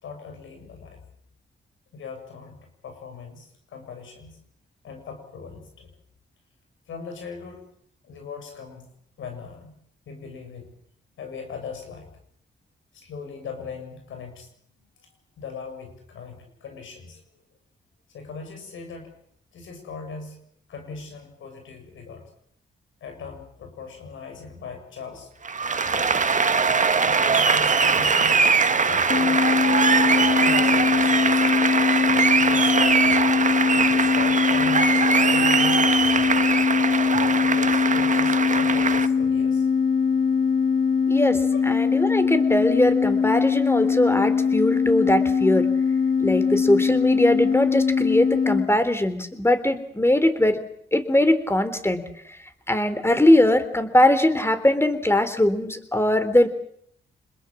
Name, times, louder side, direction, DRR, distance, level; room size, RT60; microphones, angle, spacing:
voice 1, 0.0-1.0 1.9-4.4 4.8-5.9 6.9-7.6 8.0-8.9 9.2-9.7 10.1-10.7 11.2-12.1 12.9-14.5 15.4-17.2 18.1-19.1 19.5-20.4 20.7-22.2 23.0-25.3 25.9-26.3 27.1-29.5 30.0-31.4 32.3-33.2 33.7-34.9 35.3-36.4 37.1-39.7, left 5 dB, 85° left, 5 dB, 7.2 m, -39 dB
Applause, 25.4-39.1, right 5 dB, 40° right, 1.5 m, -21 dB
sound 1, 29.1-48.7, left 6 dB, 50° left, 5.3 m, -22 dB
voice 2, 41.1-41.4 41.7-45.7 46.2-50.6 50.9-52.0 52.7-56.5, left 1 dB, 10° left, 11 dB, 3.6 m, -21 dB
27.0 x 21.0 x 7.4 m, 0.69 s
cardioid pair, 65°, 20 cm